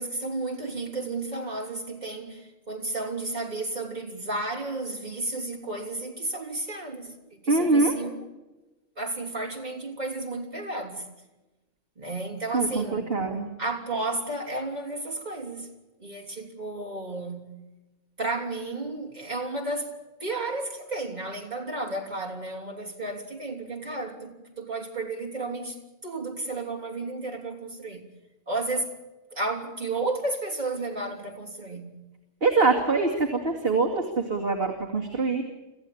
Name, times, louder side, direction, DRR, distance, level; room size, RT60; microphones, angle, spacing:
voice 1, 0.0-8.3 9.0-11.1 12.0-13.1 13.6-15.7 16.0-17.5 18.2-19.9 20.2-28.0 28.5-28.9 29.3-32.0, right 2 dB, 35° right, 3.6 m, -32 dB
voice 2, 7.5-7.9 12.5-13.5 32.4-35.4, right 3 dB, 50° right, 2.6 m, -24 dB
26.0 x 15.0 x 8.6 m
omnidirectional pair, 1.3 m